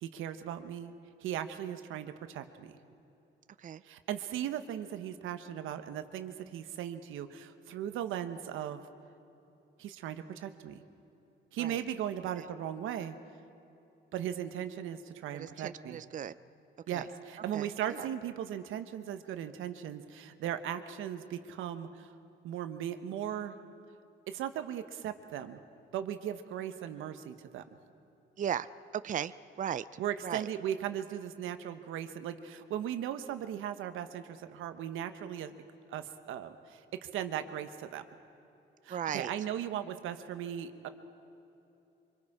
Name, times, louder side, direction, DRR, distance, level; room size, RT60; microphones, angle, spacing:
voice 1, 0.0-0.9 1.2-2.7 3.8-8.8 9.8-10.8 11.5-13.2 14.1-16.0 16.9-22.1 22.4-23.6 24.3-25.6 25.9-27.6 30.0-35.5 35.9-38.0 38.8-40.9, right 10 dB, 85° right, 9 dB, 1.1 m, -38 dB
voice 2, 15.3-16.3 16.9-17.1 17.5-18.1 28.4-30.5 38.9-39.3, right 9 dB, 40° right, 14 dB, 0.5 m, -37 dB
25.0 x 24.5 x 4.9 m, 2.9 s
cardioid pair, 90°, 20 cm